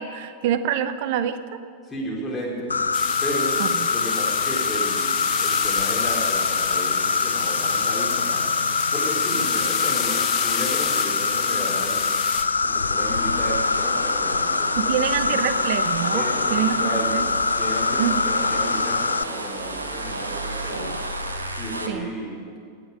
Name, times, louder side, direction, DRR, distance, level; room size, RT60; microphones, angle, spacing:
voice 1, 0.0-1.6 3.6-3.9 14.8-17.3 18.0-18.2 21.9-22.1, right 9 dB, 50° right, 13 dB, 0.8 m, -26 dB
voice 2, 1.9-2.8 3.2-3.5 3.9-8.5 8.9-12.1 12.6-15.5 16.1-16.5 16.8-20.9 21.5-22.4, equal, 15° left, -3 dB, 3.9 m, -33 dB
Insect, 2.7-19.2, left 4 dB, 75° left, 0.3 m, -24 dB
sound 1, 2.9-12.4, left 9 dB, 35° left, 1.2 m, -30 dB
sound 2, 12.5-21.9, right 2 dB, 80° right, 1.1 m, -31 dB
17.5 x 6.8 x 9.4 m, 2.3 s
figure-of-eight pair, 90°, 0 cm